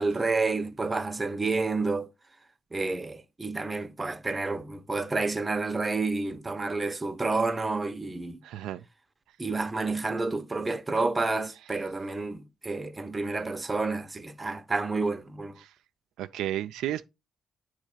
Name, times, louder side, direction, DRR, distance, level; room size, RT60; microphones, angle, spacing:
voice 1, 0.0-2.1 2.7-8.4 9.4-15.6, right 3 dB, 20° right, 0.8 m, -29 dB
voice 2, 8.4-8.8 15.6-15.7 16.2-17.0, right 12 dB, 90° right, 0.4 m, -32 dB
9.1 x 3.1 x 4.9 m
cardioid pair, 90°, 0 cm